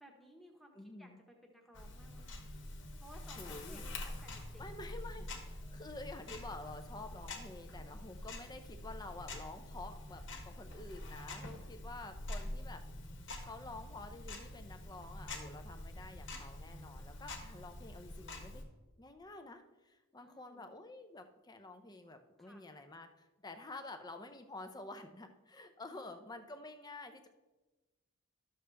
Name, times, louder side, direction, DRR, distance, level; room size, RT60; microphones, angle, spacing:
voice 1, 0.0-2.5 3.0-5.3 20.2-20.7 22.4-22.6 25.8-26.2, equal, ahead, 1 dB, 1.0 m, -59 dB
voice 2, 0.7-1.2 3.4-3.8 4.6-12.8 13.4-18.7 19.0-27.3, left 2 dB, 20° left, 8 dB, 0.5 m, -49 dB
Tick-tock, 1.7-18.6, left 1 dB, 55° left, 1.2 m, -46 dB
12.0 x 6.6 x 3.4 m, 1.2 s
head